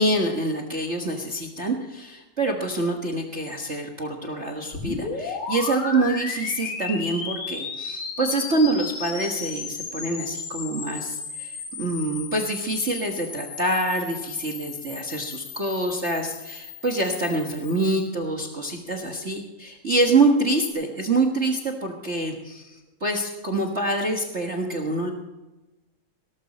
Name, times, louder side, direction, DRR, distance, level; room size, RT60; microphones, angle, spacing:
voice 1, 0.0-25.1, right 2 dB, 40° right, 2 dB, 1.0 m, -26 dB
sound 1, 4.7-18.1, left 5 dB, 75° left, 3.6 m, -35 dB
18.0 x 13.0 x 4.2 m, 1.1 s
omnidirectional pair, 3.4 m